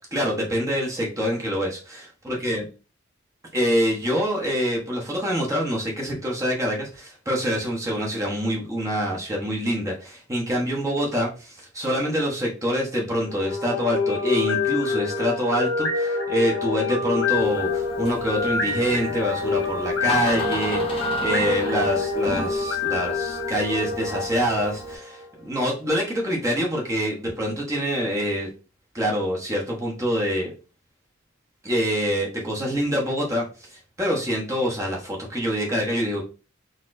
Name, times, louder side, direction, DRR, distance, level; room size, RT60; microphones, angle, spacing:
voice 1, 0.1-2.6 3.5-28.5 28.9-30.5 31.6-36.2, equal, 15° right, -2 dB, 0.9 m, -26 dB
sound 1, 13.2-25.4, left 4 dB, 80° left, 1.3 m, -26 dB
Door, 17.3-25.0, equal, 25° left, 0.7 m, -35 dB
4.1 x 2.9 x 2.5 m, 0.34 s
head